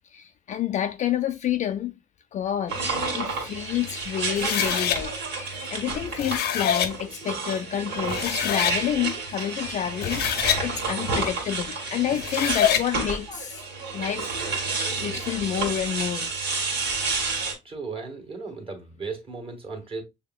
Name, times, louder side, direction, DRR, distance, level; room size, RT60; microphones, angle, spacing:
voice 1, 0.1-2.0 2.3-2.8 3.1-10.3 10.6-13.6 13.9-14.3 15.0-16.3, left 10 dB, 45° left, 0.4 m, -29 dB
sound 1, 2.7-17.5, right 4 dB, 80° right, 2.1 m, -30 dB
sound 2, 4.3-5.0 6.0-6.9 7.7-7.8 8.1-8.8 9.8-10.6 12.1-12.9, left 9 dB, 70° left, 0.7 m, -25 dB
voice 2, 17.6-20.0, right 4 dB, 35° right, 1.6 m, -36 dB
6.5 x 2.8 x 2.2 m
cardioid pair, 110°, 17 cm